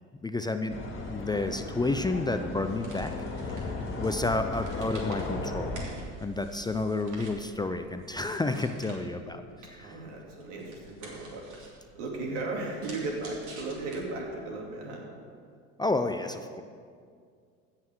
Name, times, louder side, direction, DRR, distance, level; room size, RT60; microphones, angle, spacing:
voice 1, 0.2-0.8 1.1-3.1 3.4-5.7 6.2-9.4 9.7-10.0 15.8-16.6, left 2 dB, 10° left, 7 dB, 0.5 m, -30 dB
sound 1, 0.7-5.8, left 2 dB, 35° left, 2.3 m, -36 dB
sound 2, 2.6-14.4, right 3 dB, 55° right, 3.3 m, -49 dB
voice 2, 9.8-11.5 11.9-15.1, right 2 dB, 75° right, -1 dB, 2.8 m, -36 dB
15.5 x 5.8 x 6.2 m, 2.2 s
hypercardioid pair, 80°, 35 cm